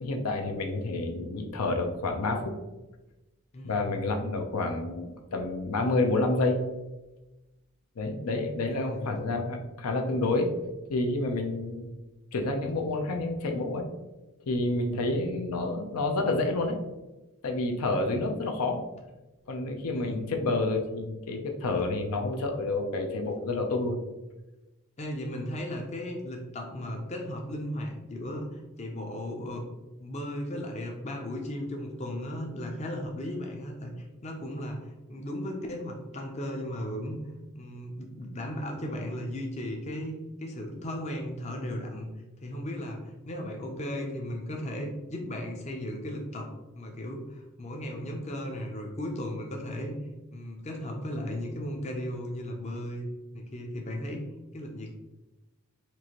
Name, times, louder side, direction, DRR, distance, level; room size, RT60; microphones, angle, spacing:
voice 1, 0.0-2.5 3.6-6.6 8.0-10.5 10.9-11.9 12.3-13.9 14.5-16.8 17.4-18.8 19.5-24.0, left 2 dB, 85° left, 4 dB, 0.5 m, -29 dB
voice 2, 3.5-4.0 8.7-9.2 19.9-20.3 25.0-29.6 30.0-37.2 37.5-42.1 42.4-46.5 46.8-50.0 50.3-53.1 53.3-54.3 54.5-54.9, left 1 dB, 30° left, 1 dB, 0.5 m, -36 dB
4.5 x 2.5 x 2.9 m, 1.1 s
head